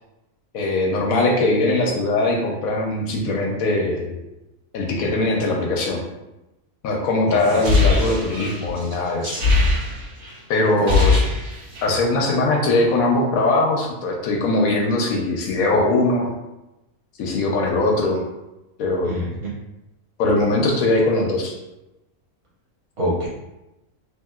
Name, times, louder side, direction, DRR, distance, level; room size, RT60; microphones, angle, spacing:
voice 1, 0.5-4.2 4.7-6.0 6.8-9.4 10.5-11.2 11.8-16.3 17.2-18.2 18.8-19.1 20.2-21.5, left 2 dB, 70° left, 0 dB, 0.9 m, -21 dB
voice 2, 7.3-7.6 10.8-11.1 19.0-19.5 23.0-23.3, equal, 35° right, -6 dB, 0.5 m, -26 dB
sound 1, 7.4-10.3 10.6-12.0, left 3 dB, 65° right, 1.2 m, -20 dB
3.1 x 2.7 x 2.3 m, 0.96 s
omnidirectional pair, 1.6 m